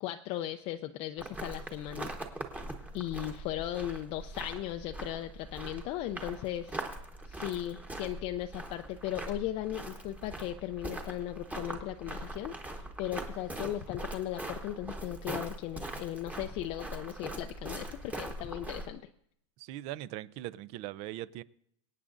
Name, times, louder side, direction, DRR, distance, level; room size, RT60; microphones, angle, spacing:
voice 1, 0.0-2.1 2.9-6.8 7.3-19.0, left 13 dB, 40° left, 0.4 m, -37 dB
sound 1, 1.2-18.9, right 1 dB, 10° right, 1.1 m, -42 dB
voice 2, 19.6-21.4, right 14 dB, 45° right, 0.4 m, -40 dB
25.5 x 8.8 x 2.5 m
supercardioid pair, 150°, 16 cm